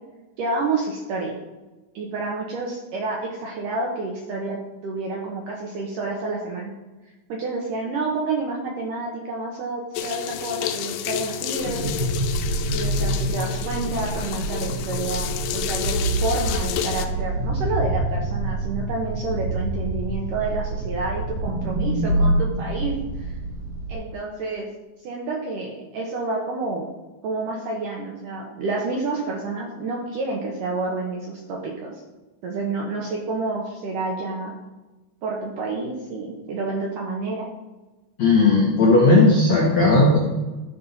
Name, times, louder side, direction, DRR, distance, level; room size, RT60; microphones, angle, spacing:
voice 1, 0.4-1.3 1.9-6.7 7.3-11.9 12.7-23.3 23.9-24.7 25.0-26.9 27.2-32.0 32.4-34.5 35.2-37.5, right 3 dB, 75° right, -1 dB, 2.0 m, -29 dB
sound 1, 10.0-17.1, left 10 dB, 90° left, 3.0 m, -30 dB
sound 2, 11.6-24.0, right 1 dB, 60° right, 1.5 m, -26 dB
voice 2, 38.2-40.2, left 2 dB, 70° left, -3 dB, 1.6 m, -16 dB
13.0 x 5.4 x 4.1 m, 1.1 s
omnidirectional pair, 5.1 m